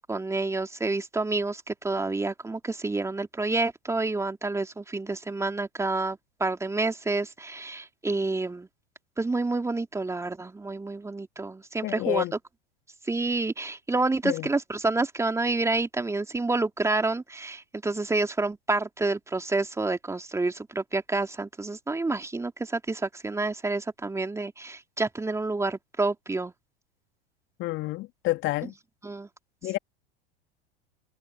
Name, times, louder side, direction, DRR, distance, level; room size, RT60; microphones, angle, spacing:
voice 1, 0.1-8.7 9.2-12.2 13.0-26.5 29.0-29.3, right 3 dB, 10° right, 2.9 m, -28 dB
voice 2, 11.8-12.3 14.2-14.5 27.6-28.7 29.6-29.8, left 18 dB, 40° left, 2.7 m, -29 dB
figure-of-eight pair, 85°, 30 cm